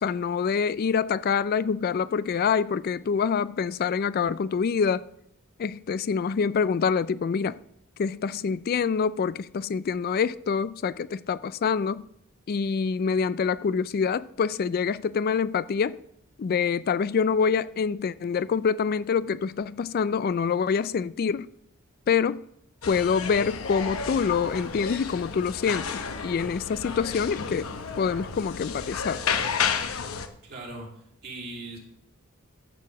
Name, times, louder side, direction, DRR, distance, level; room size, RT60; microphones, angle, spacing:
voice 1, 0.0-5.0 5.6-7.6 8.0-12.1 12.5-16.0 16.4-21.5 22.1-22.4 22.9-27.7 28.0-29.2, left 6 dB, 45° left, 0.3 m, -26 dB
sound 1, 22.8-30.3, left 6 dB, 80° left, 0.9 m, -32 dB
voice 2, 30.4-31.8, right 2 dB, 50° right, 2.9 m, -40 dB
13.0 x 4.8 x 7.1 m
head